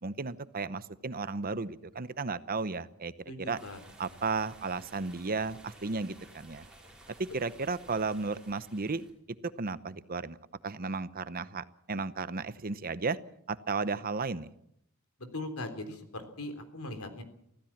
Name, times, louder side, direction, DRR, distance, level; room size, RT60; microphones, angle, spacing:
voice 1, 0.0-3.1 3.4-3.6 4.0-6.6 7.2-9.0 9.6-10.4 10.6-13.2 13.5-14.5, right 4 dB, 40° right, 14 dB, 0.8 m, -34 dB
voice 2, 3.3-3.8 15.2-17.2, left 2 dB, 75° left, 8 dB, 3.6 m, -40 dB
sound 1, 3.5-9.1, right 1 dB, 5° right, 5.6 m, -55 dB
25.0 x 16.0 x 7.3 m, 0.75 s
head